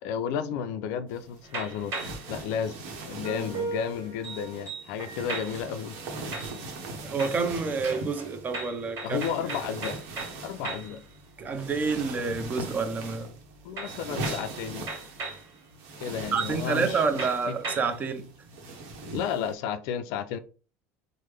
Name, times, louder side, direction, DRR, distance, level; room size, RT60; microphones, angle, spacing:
voice 1, 0.0-1.9 2.3-2.8 3.0-6.0 9.0-10.0 10.4-11.0 13.6-14.9 16.0-17.6 19.0-20.4, left 7 dB, 70° left, 0.3 m, -32 dB
sound 1, 1.1-19.5, right 2 dB, 70° right, 0.9 m, -41 dB
sound 2, 1.4-2.3 3.2-5.8 6.3-6.9 7.2-11.0 11.4-12.3 13.8-15.5 16.0-16.1 16.4-16.6 16.9-18.0, right 3 dB, 45° right, 1.7 m, -38 dB
voice 2, 7.0-9.2 9.5-9.6 11.4-13.3 16.3-18.3, right 4 dB, 30° right, 0.6 m, -28 dB
3.2 x 2.0 x 3.3 m
supercardioid pair, 120°, 6 cm